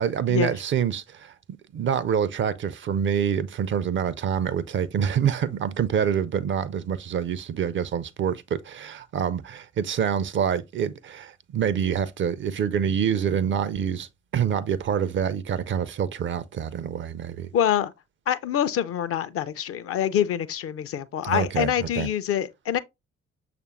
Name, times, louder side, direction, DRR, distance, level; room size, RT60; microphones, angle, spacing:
voice 1, 0.0-1.3 1.7-17.5 21.2-22.1, right 8 dB, 35° right, 0.4 m, -26 dB
voice 2, 17.5-17.9 18.3-22.8, left 10 dB, 45° left, 0.5 m, -25 dB
6.5 x 2.5 x 3.0 m
figure-of-eight pair, 40°, 34 cm